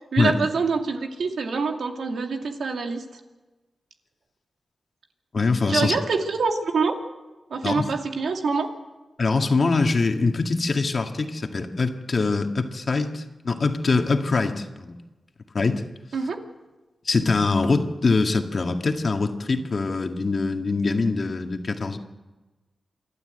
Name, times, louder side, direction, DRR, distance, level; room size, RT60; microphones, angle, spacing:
voice 1, 0.1-3.0 5.7-7.0 7.5-8.7 16.1-16.4, right 4 dB, 80° right, 3 dB, 2.4 m, -25 dB
voice 2, 5.3-5.9 7.6-7.9 9.2-15.0 15.5-15.8 17.1-22.0, left 3 dB, 50° left, 4 dB, 1.9 m, -23 dB
28.0 x 12.0 x 8.0 m, 1.2 s
wide cardioid pair, 85°, 0 cm